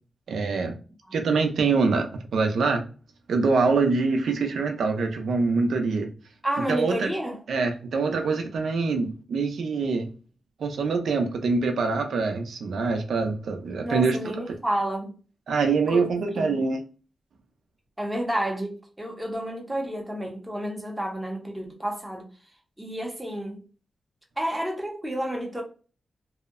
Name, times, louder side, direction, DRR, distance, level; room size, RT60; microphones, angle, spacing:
voice 1, 0.3-0.8 1.1-2.8 3.3-6.1 6.7-7.1 7.5-10.1 10.6-14.2 15.5-16.8, right 4 dB, 90° right, 0.5 m, -24 dB
voice 2, 6.4-7.4 13.8-15.2 15.9-16.6 18.0-22.3 22.8-23.6 24.4-25.6, right 1 dB, 5° right, 0.6 m, -30 dB
2.7 x 2.0 x 2.4 m
wide cardioid pair, 165°, 0 cm